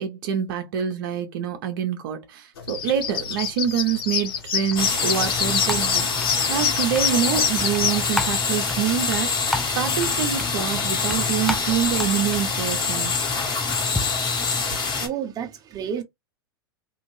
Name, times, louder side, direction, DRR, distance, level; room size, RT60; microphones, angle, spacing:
voice 1, 0.0-13.1, right 9 dB, 60° right, 0.7 m, -26 dB
sound 1, 2.6-8.0, left 7 dB, 70° left, 1.1 m, -26 dB
sound 2, 4.4-14.0, left 1 dB, ahead, 0.4 m, -35 dB
sound 3, 4.8-15.1, left 4 dB, 30° left, 1.5 m, -25 dB
voice 2, 14.7-16.0, right 8 dB, 30° right, 0.9 m, -31 dB
2.7 x 2.5 x 3.1 m
hypercardioid pair, 100°, 13 cm